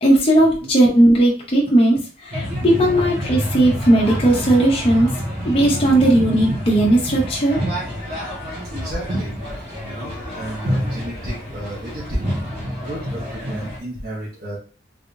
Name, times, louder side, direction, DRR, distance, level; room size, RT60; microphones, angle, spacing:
voice 1, 0.0-5.1 5.4-7.6, right 1 dB, 30° left, -3 dB, 0.7 m, -16 dB
sound 1, 2.3-13.8, equal, 35° right, 1.3 m, -27 dB
voice 2, 2.6-2.9 8.7-9.4 9.8-12.3 12.8-14.6, right 1 dB, 55° right, -7 dB, 1.1 m, -31 dB
3.4 x 3.3 x 2.6 m, 0.38 s
head